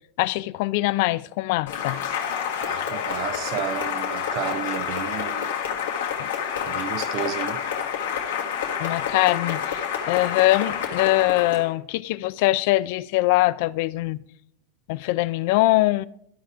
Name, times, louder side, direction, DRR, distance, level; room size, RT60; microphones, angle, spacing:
voice 1, 0.2-2.0 6.2-6.3 8.8-14.2 14.9-16.1, left 18 dB, 65° left, 0.3 m, -22 dB
Cheering / Applause, 1.7-11.7, left 8 dB, 80° left, 1.6 m, -28 dB
voice 2, 2.6-5.6 6.7-7.7, right 12 dB, 50° right, 0.5 m, -32 dB
14.0 x 4.9 x 3.4 m
hypercardioid pair, 105°, 0 cm